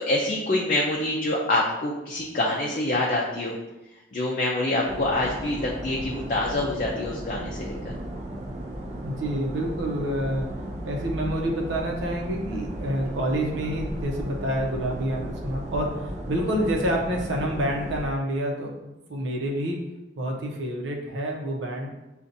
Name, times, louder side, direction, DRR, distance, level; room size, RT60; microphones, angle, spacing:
voice 1, 0.0-3.6 4.1-7.9, left 1 dB, 45° left, -3 dB, 0.5 m, -26 dB
sound 1, 4.8-18.0, right 1 dB, 40° right, 0.5 m, -35 dB
voice 2, 9.0-19.8 20.1-21.9, equal, 90° right, 0 dB, 0.8 m, -28 dB
6.9 x 2.5 x 2.6 m, 1.0 s
head